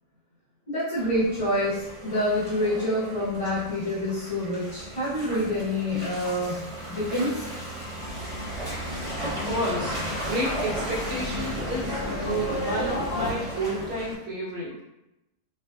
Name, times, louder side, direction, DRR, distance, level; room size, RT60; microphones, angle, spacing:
voice 1, 0.7-6.6 6.9-7.3, left 1 dB, 30° left, -14 dB, 0.8 m, -27 dB
Car passing by / Engine, 1.0-14.2, equal, 30° right, 0.9 m, -35 dB
Livestock farm animals working animals, 8.0-13.3, left 1 dB, 70° left, 1.0 m, -34 dB
voice 2, 9.2-10.0 10.3-14.8, right 1 dB, 60° right, -4 dB, 1.0 m, -31 dB
2.5 x 2.2 x 2.3 m, 0.91 s
omnidirectional pair, 1.2 m